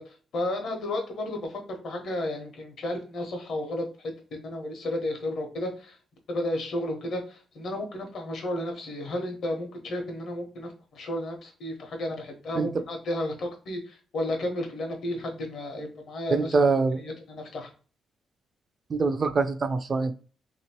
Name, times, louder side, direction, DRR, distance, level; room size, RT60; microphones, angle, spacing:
voice 1, 0.0-6.0 6.3-16.5 17.0-17.7, left 1 dB, 65° left, 3 dB, 1.1 m, -33 dB
voice 2, 16.3-17.0 18.9-20.1, right 4 dB, 35° right, 9 dB, 0.4 m, -24 dB
3.2 x 2.9 x 2.9 m, 0.38 s
cardioid pair, 125°, 0 cm